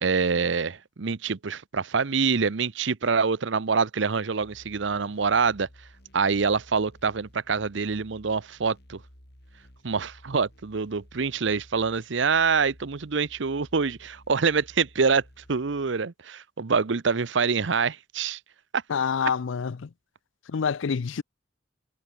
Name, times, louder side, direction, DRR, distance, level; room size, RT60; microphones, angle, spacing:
voice 1, 0.0-5.7 6.1-9.0 9.8-15.2 15.5-18.4, right 5 dB, 70° right, 0.7 m, -25 dB
sound 1, 4.4-16.0, equal, 55° left, 6.6 m, -54 dB
voice 2, 18.9-19.9 20.5-21.2, left 6 dB, 75° left, 0.5 m, -27 dB
head